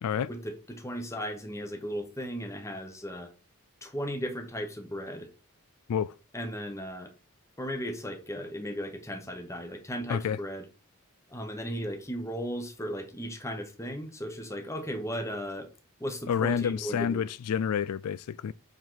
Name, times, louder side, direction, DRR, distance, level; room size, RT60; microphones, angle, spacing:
voice 1, 0.3-3.3 3.8-5.3 6.3-7.1 7.6-10.6 11.3-15.7 16.0-17.3, equal, 15° left, 1.2 m, -36 dB
voice 2, 16.3-18.5, left 8 dB, 85° left, 0.4 m, -29 dB
7.8 x 4.5 x 4.0 m
head